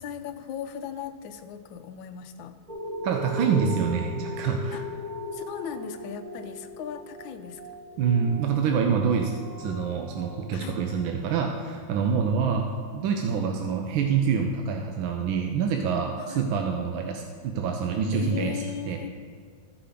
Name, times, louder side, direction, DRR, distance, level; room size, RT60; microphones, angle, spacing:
voice 1, 0.0-2.6 4.7-4.8 5.3-7.6 10.5-10.8 16.2-16.5 18.1-19.1, left 8 dB, 80° left, 8 dB, 1.3 m, -37 dB
sound 1, 2.7-11.6 12.2-12.3, left 1 dB, 35° right, 0.6 m, -39 dB
voice 2, 3.0-4.8 8.0-19.0, right 6 dB, 80° right, 2 dB, 1.4 m, -26 dB
14.0 x 5.0 x 5.0 m, 2.2 s
omnidirectional pair, 2.1 m